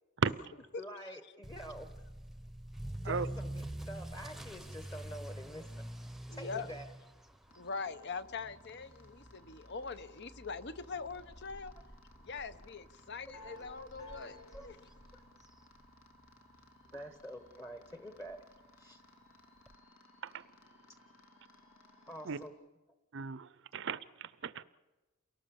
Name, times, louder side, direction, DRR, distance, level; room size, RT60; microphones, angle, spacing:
voice 1, 0.8-2.1 3.0-5.9 6.3-6.9 13.8-13.9 14.5-14.7 15.1-15.2 16.9-18.4 18.8-19.0 22.1-22.6, equal, 15° left, 1.1 m, -47 dB
Motor vehicle (road) / Accelerating revving vroom, 1.4-16.3 16.6-17.0 17.5-17.6 17.9-18.0 18.3-18.4 19.7-19.8, right 1 dB, ahead, 0.8 m, -47 dB
voice 2, 6.3-6.7 7.5-11.7 12.2-14.4 14.6-14.8, left 4 dB, 55° left, 1.0 m, -42 dB
sound 1, 7.5-22.5, left 2 dB, 80° left, 2.7 m, -59 dB
voice 3, 23.1-24.6, right 5 dB, 60° right, 0.6 m, -35 dB
28.5 x 18.0 x 7.1 m
head